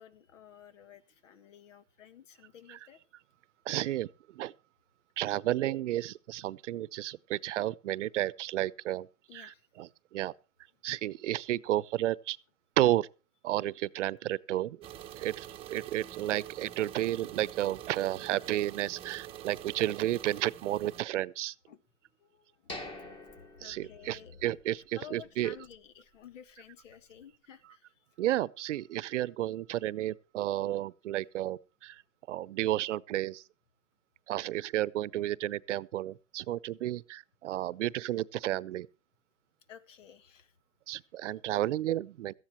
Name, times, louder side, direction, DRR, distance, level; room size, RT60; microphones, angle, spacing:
voice 1, 0.0-3.0 5.3-5.6 9.3-9.6 21.7-21.8 22.2-24.4 25.0-28.0 39.7-40.5, left 9 dB, 80° left, 1.8 m, -53 dB
voice 2, 3.7-4.5 5.2-9.1 9.3-10.3 10.8-12.4 12.8-13.1 13.4-14.8 15.2-21.5 23.6-25.5 28.2-32.0 32.3-33.4 34.3-38.9 40.9-42.3, right 14 dB, 75° right, 0.8 m, -32 dB
sound 1, 14.8-21.0, right 11 dB, 15° right, 0.9 m, -46 dB
sound 2, 22.7-24.6 24.9-25.0 25.6-25.7, left 1 dB, 15° left, 1.7 m, -45 dB
17.5 x 14.0 x 3.0 m
supercardioid pair, 155°, 37 cm